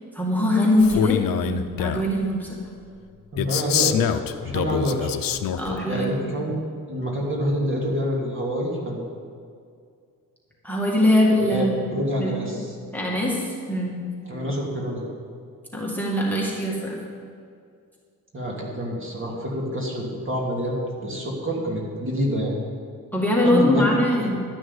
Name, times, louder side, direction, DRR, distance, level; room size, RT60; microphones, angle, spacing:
voice 1, 0.1-2.6 5.6-6.3 10.6-11.9 12.2-12.5 12.9-14.0 15.7-17.0 23.1-24.5, left 1 dB, 5° left, -4 dB, 2.2 m, -22 dB
Male speech man speaking, 0.8-2.1 3.4-5.8, left 9 dB, 70° left, 0.7 m, -25 dB
voice 2, 3.3-5.1 5.9-6.6 6.9-9.0 11.4-12.8 14.3-15.1 18.3-22.6 23.4-24.1, equal, 35° right, -2 dB, 2.8 m, -27 dB
12.0 x 6.4 x 8.1 m, 2.3 s
cardioid pair, 100°, 35 cm